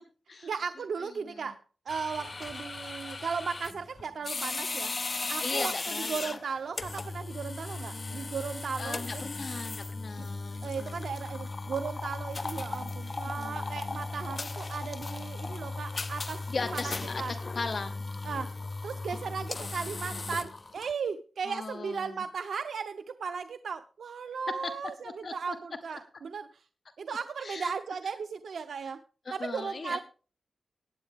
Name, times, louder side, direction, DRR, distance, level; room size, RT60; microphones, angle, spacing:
voice 1, 0.4-1.6 1.9-5.0 5.3-9.2 10.2-10.3 10.6-16.4 16.7-17.3 18.2-18.5 18.8-26.6 27.0-29.0 29.3-30.0, right 5 dB, 90° right, 9 dB, 0.6 m, -36 dB
sound 1, 1.9-20.9, left 3 dB, 30° left, 0.5 m, -37 dB
voice 2, 5.4-6.2 7.9-8.3 8.8-11.0 13.4-14.1 16.5-18.1 21.5-22.2 24.6-24.7 25.0-25.6 25.9-26.0 27.4-27.7 29.3-30.0, left 4 dB, 45° left, 8 dB, 0.9 m, -38 dB
18.0 x 8.4 x 3.5 m, 0.37 s
wide cardioid pair, 180°, 0 cm